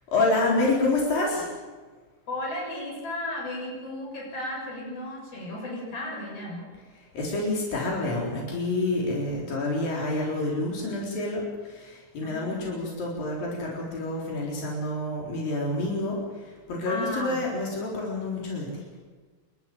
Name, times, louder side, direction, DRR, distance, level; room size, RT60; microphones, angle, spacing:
voice 1, 0.1-1.5 6.7-18.8, left 2 dB, 85° left, -2 dB, 5.8 m, -28 dB
voice 2, 2.3-6.7 12.2-12.7 16.8-17.4, left 1 dB, 45° left, -2 dB, 8.3 m, -34 dB
28.5 x 13.0 x 9.3 m, 1.4 s
omnidirectional pair, 3.9 m